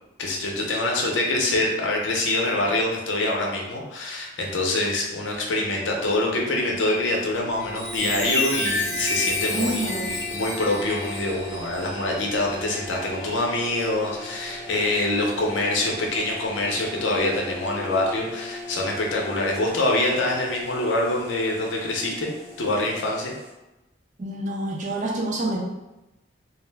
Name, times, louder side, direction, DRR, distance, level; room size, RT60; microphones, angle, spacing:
voice 1, 0.2-22.3 22.6-23.3, left 2 dB, 75° left, -1 dB, 0.6 m, -25 dB
sound 1, 5.6-23.5, left 1 dB, 70° right, 1.2 m, -40 dB
Chime, 7.5-13.5 14.0-14.3, left 3 dB, 15° left, 0.5 m, -31 dB
voice 2, 9.5-10.2 24.2-25.6, right 1 dB, 40° right, 0 dB, 0.4 m, -27 dB
2.4 x 2.1 x 3.3 m, 0.98 s
head